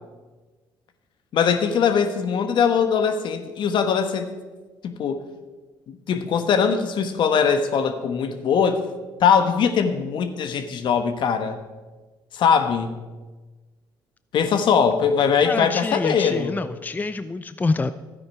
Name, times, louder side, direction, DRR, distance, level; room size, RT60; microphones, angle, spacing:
voice 1, 1.3-4.3 4.8-5.2 5.9-8.8 9.2-11.6 12.3-13.0 14.3-16.6, left 6 dB, 65° left, 8 dB, 1.3 m, -21 dB
voice 2, 15.4-17.9, left 3 dB, 20° left, 12 dB, 0.5 m, -26 dB
12.5 x 9.6 x 4.8 m, 1.3 s
supercardioid pair, 70°, 9 cm